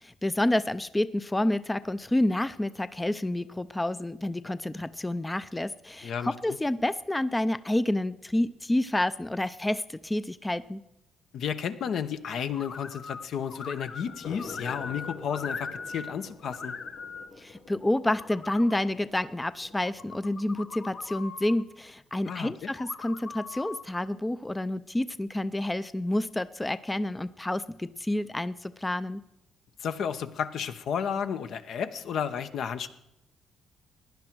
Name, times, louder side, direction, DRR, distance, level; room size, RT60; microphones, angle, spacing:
voice 1, 0.0-10.8 17.4-29.2, left 1 dB, 10° left, 14 dB, 0.4 m, -29 dB
sound 1, 1.8-7.7 8.0-8.1 8.5-8.6 8.9-9.0 9.4-9.5 12.3-12.4 13.8-21.2, left 3 dB, 85° left, 3.4 m, -50 dB
voice 2, 6.0-6.6 11.3-16.7 22.3-22.7 29.8-32.9, left 7 dB, 70° left, 10 dB, 0.9 m, -32 dB
sound 2, 12.5-13.2 13.5-16.1 16.4-17.3 17.8-18.8 19.7-21.6 22.7-23.8, left 4 dB, 50° left, 1.3 m, -40 dB
16.0 x 10.5 x 4.6 m, 0.91 s
cardioid pair, 90°, 0 cm